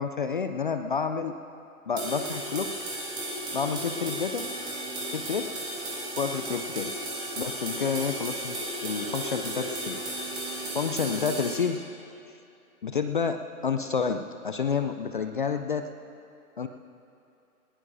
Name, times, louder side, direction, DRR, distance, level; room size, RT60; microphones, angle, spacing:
voice 1, 0.0-1.3 1.9-2.7 3.5-4.5 5.1-5.5 6.2-6.9 7.4-10.0 10.7-11.8 12.8-15.9 16.6-16.7, left 6 dB, 35° left, 8 dB, 0.4 m, -29 dB
sound 1, 2.0-11.6, right 1 dB, 10° right, 2.2 m, -34 dB
20.0 x 19.5 x 2.7 m, 2.6 s
figure-of-eight pair, 140°, 44 cm